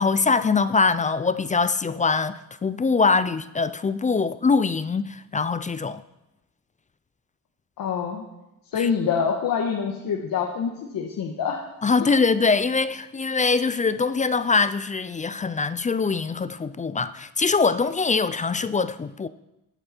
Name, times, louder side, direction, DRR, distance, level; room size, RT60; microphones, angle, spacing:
voice 1, 0.0-6.0 8.7-8.9 11.8-19.3, left 4 dB, 20° left, 14 dB, 0.4 m, -23 dB
voice 2, 7.8-8.2 8.7-11.6 12.0-12.1, left 6 dB, 65° left, 0 dB, 1.6 m, -26 dB
16.0 x 9.0 x 4.5 m, 0.94 s
cardioid pair, 115°, 36 cm